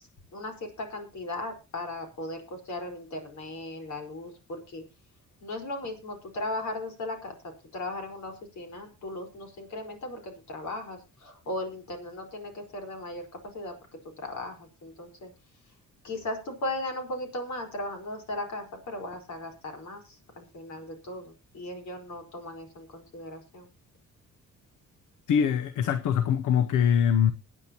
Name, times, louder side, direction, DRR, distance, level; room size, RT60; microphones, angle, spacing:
voice 1, 0.3-4.8 5.4-7.3 7.7-13.2 13.5-13.7 14.2-15.3 16.0-23.7, left 1 dB, 70° left, 4.6 m, -37 dB
voice 2, 25.3-27.3, left 8 dB, 85° left, 0.9 m, -23 dB
21.5 x 9.0 x 2.9 m
cardioid pair, 90°, 30 cm